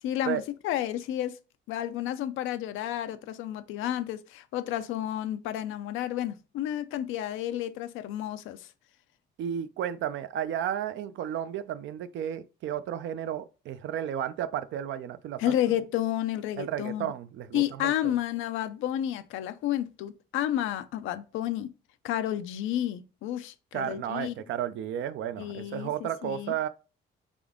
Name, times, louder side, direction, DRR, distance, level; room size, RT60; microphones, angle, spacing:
voice 1, 0.0-1.4 1.7-8.7 15.4-17.1 17.5-21.7 22.0-24.4 25.4-26.6, left 12 dB, 90° left, 0.4 m, -31 dB
voice 2, 9.4-15.6 16.6-18.1 23.7-26.7, right 10 dB, 75° right, 0.4 m, -33 dB
3.6 x 3.5 x 3.6 m
cardioid pair, 90°, 20 cm